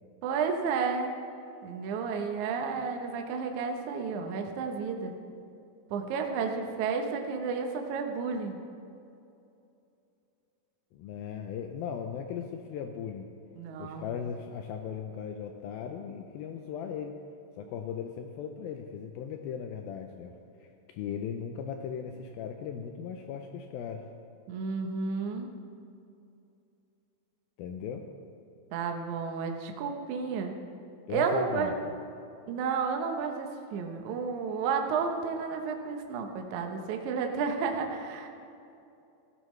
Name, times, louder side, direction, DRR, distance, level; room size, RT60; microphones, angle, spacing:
voice 1, 0.2-1.1 1.6-5.1 5.9-8.6 13.6-14.1 24.5-25.5 28.7-30.6 31.1-31.7 32.5-38.3, right 5 dB, 85° right, 3 dB, 1.7 m, -31 dB
voice 2, 10.9-13.3 13.8-17.2 17.6-20.3 20.6-24.1 27.6-28.1 31.1-32.0, left 7 dB, 85° left, 5 dB, 2.1 m, -38 dB
15.5 x 14.0 x 3.2 m, 2.7 s
omnidirectional pair, 4.9 m